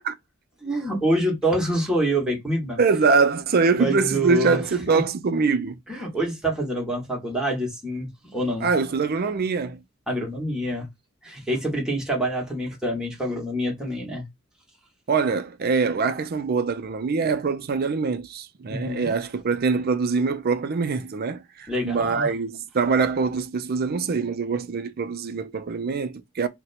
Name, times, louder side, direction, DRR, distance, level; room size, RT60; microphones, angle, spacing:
voice 1, 0.6-2.8 3.7-4.6 4.9-5.0 5.9-8.7 10.1-10.9 11.2-14.3 18.7-19.1 21.7-22.3, right 1 dB, 5° right, 1.2 m, -26 dB
voice 2, 2.8-5.8 8.6-9.8 15.1-26.5, right 4 dB, 50° right, 0.4 m, -23 dB
2.8 x 2.2 x 4.0 m
head